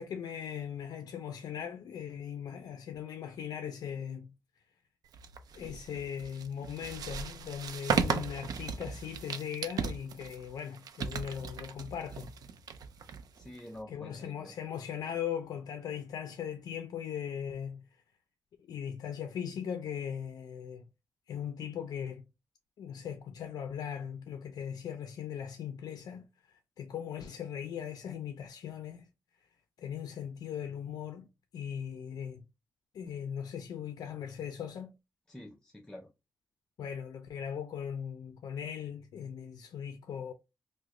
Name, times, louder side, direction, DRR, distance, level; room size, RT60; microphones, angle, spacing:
voice 1, 0.0-4.3 5.5-12.3 13.9-17.8 18.6-20.8 21.3-22.2 22.8-29.0 29.8-31.3 31.5-32.4 32.9-34.9 36.8-40.3, left 8 dB, 85° left, 0.4 m, -39 dB
sound 1, 5.1-13.8, right 6 dB, 80° right, 0.4 m, -36 dB
voice 2, 13.4-14.6 35.3-36.1, left 1 dB, 10° left, 0.4 m, -47 dB
3.0 x 2.1 x 3.7 m
wide cardioid pair, 140°, 7 cm